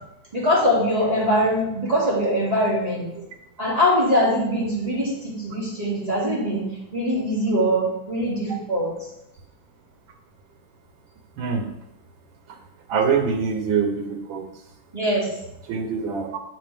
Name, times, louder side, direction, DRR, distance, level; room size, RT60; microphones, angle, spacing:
voice 1, 0.3-3.1 3.6-6.7 6.9-8.9 14.9-15.3, equal, 20° right, -7 dB, 2.1 m, -22 dB
voice 2, 11.4-11.7 12.9-14.4 15.7-16.4, right 6 dB, 85° right, 5 dB, 1.6 m, -24 dB
6.4 x 6.2 x 3.5 m, 0.85 s
omnidirectional pair, 2.1 m